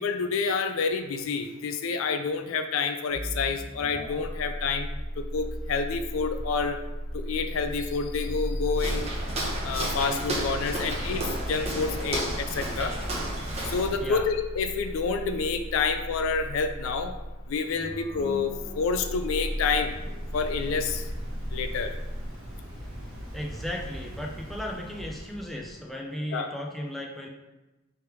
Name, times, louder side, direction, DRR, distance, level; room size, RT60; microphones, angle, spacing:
voice 1, 0.0-4.9 5.2-6.8 7.1-9.1 9.6-12.9 13.6-17.1 17.5-19.9 20.3-21.0 21.5-21.9 26.3-26.5, left 5 dB, 75° left, 8 dB, 0.4 m, -28 dB
sound 1, 3.1-22.3, equal, 25° left, 0.8 m, -36 dB
Walk footsteps, 8.7-14.0, right 1 dB, 30° right, 0.8 m, -32 dB
Waves surf, 18.2-25.8, equal, 80° right, 1.2 m, -42 dB
voice 2, 23.3-27.3, left 1 dB, ahead, -1 dB, 0.4 m, -35 dB
3.4 x 3.2 x 4.5 m, 1.1 s
head